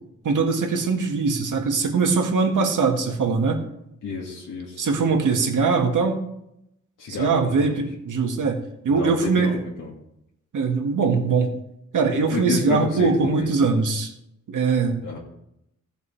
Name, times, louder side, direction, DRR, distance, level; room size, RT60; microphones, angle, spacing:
voice 1, 0.2-3.6 4.8-6.2 7.2-9.6 10.5-11.5 11.9-14.1 14.5-15.2, right 4 dB, 80° right, 2 dB, 2.0 m, -22 dB
voice 2, 4.0-5.4 7.0-7.8 8.9-9.9 12.3-13.5 15.0-15.2, left 4 dB, 85° left, -4 dB, 2.3 m, -30 dB
17.5 x 6.8 x 3.4 m, 0.79 s
wide cardioid pair, 155°, 31 cm